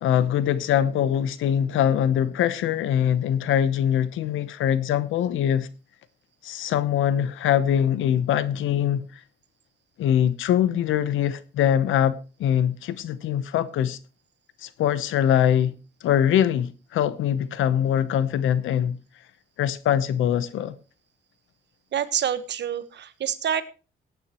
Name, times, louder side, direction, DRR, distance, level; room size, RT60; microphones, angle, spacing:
voice 1, 0.0-5.7 6.4-9.0 10.0-14.0 14.6-15.7 16.0-19.0 19.6-20.7, left 10 dB, 80° left, 0.9 m, -23 dB
voice 2, 21.9-23.6, right 9 dB, 60° right, 1.3 m, -27 dB
18.0 x 9.4 x 3.0 m
cardioid pair, 90°, 20 cm